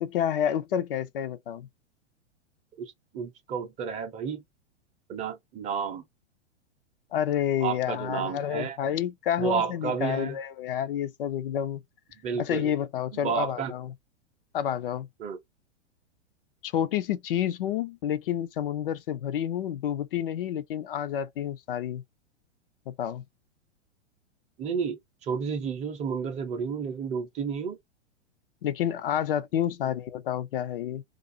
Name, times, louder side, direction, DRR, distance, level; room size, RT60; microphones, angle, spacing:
voice 1, 0.0-1.7 7.1-11.8 12.4-13.9 14.5-15.1 16.6-22.0 22.9-23.2 28.6-31.0, left 10 dB, 55° left, 0.5 m, -29 dB
voice 2, 2.8-4.4 5.1-6.0 7.6-8.8 9.4-10.4 12.2-12.7 13.1-13.7 15.2-15.4 24.6-27.8, right 6 dB, 20° right, 0.6 m, -31 dB
2.5 x 2.3 x 2.6 m
figure-of-eight pair, 105°, 34 cm